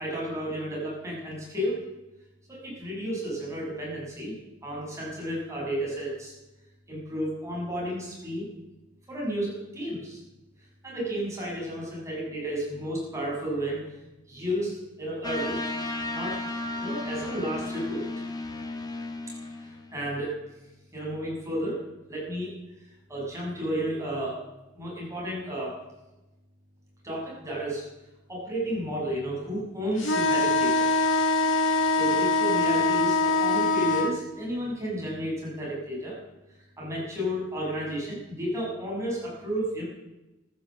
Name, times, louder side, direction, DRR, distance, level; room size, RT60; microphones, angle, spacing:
voice 1, 0.0-1.8 2.5-4.4 4.6-6.3 6.9-8.5 9.1-10.2 10.8-13.8 14.3-15.6 16.1-16.4 16.8-18.2 19.5-20.3 20.9-21.8 22.1-22.5 23.1-24.4 24.7-25.8 27.0-27.9 28.3-30.9 31.9-36.2 36.8-39.8, equal, 15° right, -5 dB, 6.8 m, -32 dB
sound 1, 15.2-20.1, left 2 dB, 20° left, 1.6 m, -34 dB
sound 2, 30.0-34.1, left 3 dB, 75° left, 2.3 m, -23 dB
14.5 x 12.5 x 7.5 m, 1.0 s
head